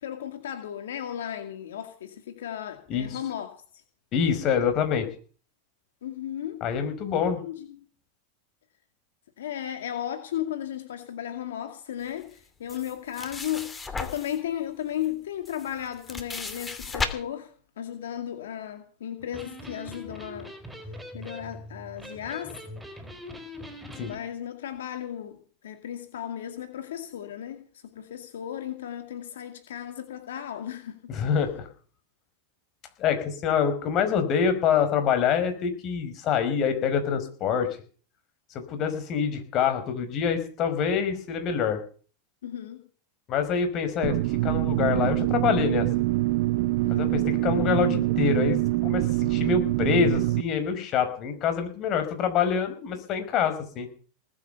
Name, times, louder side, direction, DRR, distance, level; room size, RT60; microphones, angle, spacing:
voice 1, 0.0-3.8 6.0-6.6 7.4-7.9 9.4-20.5 21.1-22.6 24.0-31.0 42.4-42.8 46.8-47.1, left 10 dB, 85° left, 2.2 m, -35 dB
voice 2, 2.9-3.2 4.1-5.1 6.6-7.4 23.9-24.1 31.1-31.7 33.0-37.8 38.7-41.8 43.3-45.9 46.9-53.9, left 7 dB, 45° left, 4.9 m, -26 dB
sound 1, 12.7-14.4 15.0-15.1 15.4-17.1, left 4 dB, 15° left, 2.7 m, -34 dB
Electric guitar, 19.2-24.2, left 1 dB, 5° right, 4.3 m, -42 dB
sound 2, 44.0-50.4, right 19 dB, 60° right, 0.7 m, -25 dB
19.5 x 9.0 x 7.0 m
hypercardioid pair, 115°, 0 cm